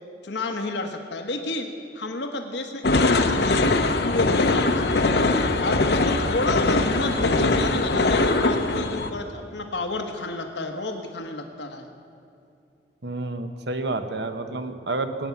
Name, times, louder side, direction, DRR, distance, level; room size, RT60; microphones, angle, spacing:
voice 1, 0.2-3.7 4.0-5.2 5.6-11.9, left 2 dB, 80° left, 4 dB, 1.2 m, -30 dB
sound 1, 2.8-9.1, left 2 dB, 65° left, 0.8 m, -21 dB
voice 2, 13.0-15.3, right 2 dB, 75° right, 8 dB, 1.0 m, -29 dB
19.5 x 9.4 x 7.2 m, 2.5 s
head